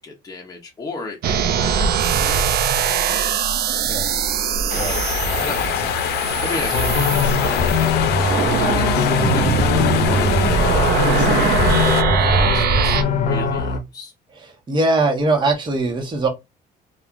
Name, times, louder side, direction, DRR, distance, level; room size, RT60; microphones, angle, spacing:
voice 1, 0.0-3.8 4.8-5.6 6.4-9.7 10.1-14.1, left 3 dB, 20° left, 0.8 m, -35 dB
sound 1, 1.2-13.0, right 6 dB, 65° right, 0.5 m, -21 dB
sound 2, 4.7-12.0, left 11 dB, 75° left, 0.5 m, -25 dB
voice 2, 4.7-5.5 14.7-16.3, right 2 dB, 25° right, 1.1 m, -21 dB
sound 3, 6.7-13.8, left 4 dB, 50° left, 0.8 m, -21 dB
3.3 x 2.4 x 2.5 m
cardioid pair, 110°, 17 cm